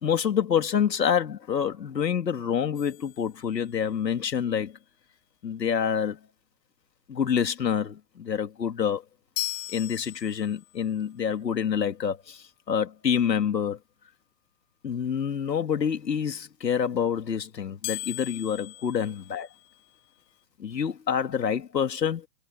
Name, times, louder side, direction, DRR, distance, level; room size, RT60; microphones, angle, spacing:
voice 1, 0.0-4.8 5.4-6.2 7.1-9.0 9.7-13.8 14.8-19.5 20.6-22.3, left 7 dB, 90° left, 2.8 m, -27 dB
sound 1, 2.8-4.1 9.4-10.8 17.8-20.0, left 22 dB, 40° left, 2.8 m, -38 dB
hypercardioid pair, 135°, 48 cm